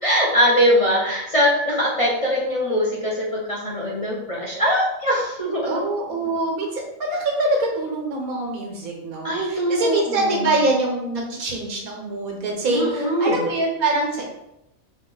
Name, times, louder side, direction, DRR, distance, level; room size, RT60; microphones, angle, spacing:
voice 1, 0.0-5.7 9.2-10.6 12.7-13.4, equal, 30° left, -4 dB, 0.7 m, -22 dB
voice 2, 5.6-14.2, right 2 dB, 90° right, 0 dB, 1.6 m, -24 dB
5.1 x 2.6 x 3.8 m, 0.88 s
omnidirectional pair, 1.5 m